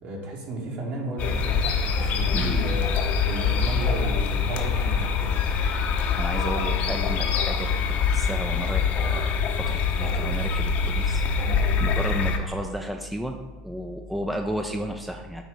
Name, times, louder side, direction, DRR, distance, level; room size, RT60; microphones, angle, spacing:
voice 1, 0.0-2.9 3.3-5.5 6.3-6.7 11.4-11.6, right 2 dB, 50° right, -1 dB, 1.9 m, -33 dB
sound 1, 1.2-12.4, left 5 dB, 50° left, 0.9 m, -24 dB
voice 2, 6.2-7.7 8.0-13.4 13.6-15.4, equal, 5° right, 4 dB, 0.5 m, -33 dB
9.0 x 3.0 x 5.2 m, 1.2 s
hypercardioid pair, 90°, 3 cm